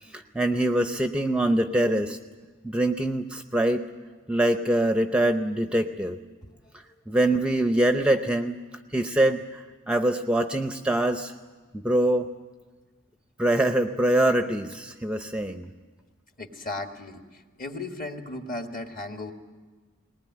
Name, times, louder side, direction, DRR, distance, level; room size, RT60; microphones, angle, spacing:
voice 1, 0.1-2.2 2.6-3.8 4.3-6.2 7.1-8.6 8.9-11.3 11.7-12.3 13.4-15.7, right 1 dB, 5° right, 7 dB, 0.6 m, -24 dB
voice 2, 16.4-19.3, left 2 dB, 45° left, 5 dB, 1.8 m, -36 dB
20.5 x 19.5 x 9.5 m, 1.3 s
head